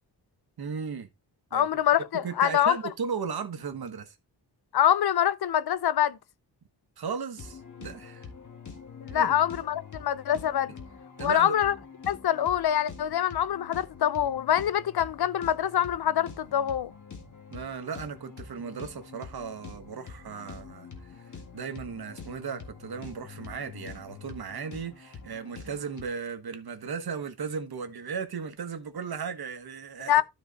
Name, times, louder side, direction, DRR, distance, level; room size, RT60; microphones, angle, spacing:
voice 1, 0.6-1.1 1.5-1.7 2.1-4.1 7.0-8.2 9.1-9.3 11.2-11.6 17.5-20.9 21.5-30.2, right 6 dB, 60° right, 1.4 m, -36 dB
voice 2, 1.5-2.8 4.7-6.2 9.0-10.7 11.2-11.8 12.1-16.9 30.1-30.2, left 10 dB, 65° left, 0.6 m, -25 dB
sound 1, 7.4-26.0, left 5 dB, 45° left, 2.0 m, -45 dB
12.5 x 4.3 x 4.0 m
wide cardioid pair, 180°, 42 cm